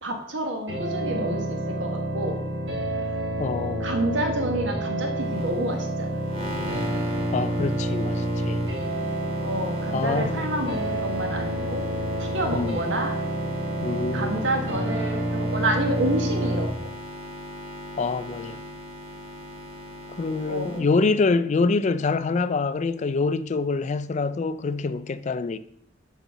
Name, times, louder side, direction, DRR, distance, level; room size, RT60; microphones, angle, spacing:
voice 1, 0.0-2.4 3.8-6.3 9.4-11.8 12.2-13.1 14.1-16.9 20.5-20.9, right 1 dB, 85° right, 1.3 m, -29 dB
sound 1, 0.7-16.7, right 1 dB, 70° right, 1.5 m, -28 dB
voice 2, 3.4-3.9 7.3-8.6 9.9-10.5 12.5-12.8 13.8-14.3 18.0-18.6 20.2-25.6, left 4 dB, 40° left, 0.3 m, -25 dB
sound 2, 5.2-20.8, equal, 30° right, 1.5 m, -39 dB
7.1 x 4.0 x 5.5 m
head